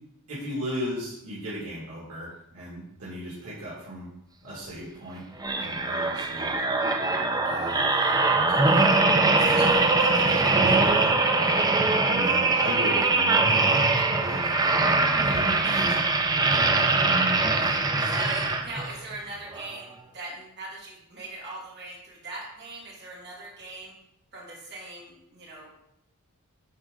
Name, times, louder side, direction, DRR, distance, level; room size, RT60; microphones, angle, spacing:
voice 1, 0.3-4.1 4.4-5.2 5.5-6.6 9.4-9.7 12.1-13.9 14.2-15.9, right 1 dB, 90° right, -8 dB, 2.0 m, -35 dB
sound 1, 5.4-19.0 19.5-19.7, right 3 dB, 15° right, 0.5 m, -22 dB
voice 2, 7.4-9.0 9.4-11.6 15.6-15.9 16.5-16.6 17.6-23.9 24.3-25.7, right 2 dB, 50° right, -5 dB, 2.5 m, -40 dB
9.7 x 3.7 x 3.7 m, 0.82 s
head